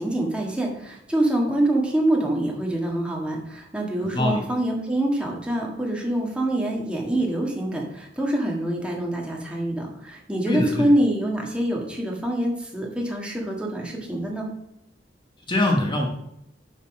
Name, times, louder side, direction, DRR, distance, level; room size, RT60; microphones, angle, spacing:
voice 1, 0.0-14.5, right 1 dB, 5° right, -2 dB, 1.6 m, -25 dB
voice 2, 4.0-4.4 10.5-10.8 15.5-16.1, left 1 dB, 25° left, 1 dB, 1.0 m, -23 dB
8.4 x 4.0 x 6.2 m, 0.80 s
head